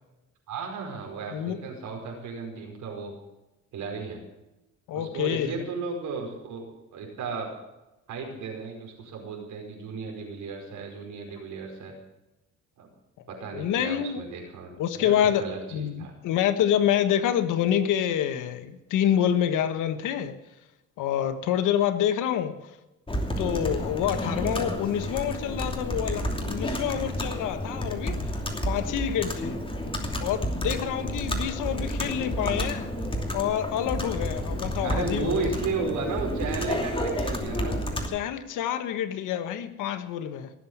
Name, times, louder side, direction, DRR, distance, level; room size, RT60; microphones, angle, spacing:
voice 1, 0.5-3.1 3.7-4.2 4.9-6.6 6.9-7.5 8.1-11.9 12.8-12.9 13.3-16.1 34.8-37.8, right 4 dB, 80° right, 1 dB, 5.0 m, -34 dB
voice 2, 4.9-5.6 13.5-14.2 14.8-15.4 15.7-20.4 21.0-22.5 23.4-28.2 28.7-29.6 30.2-32.9 33.3-35.5 38.1-40.5, left 10 dB, 90° left, 10 dB, 1.4 m, -27 dB
Computer keyboard, 23.1-38.1, equal, 15° left, 2.8 m, -30 dB
18.0 x 7.8 x 8.0 m, 0.98 s
cardioid pair, 90°, 30 cm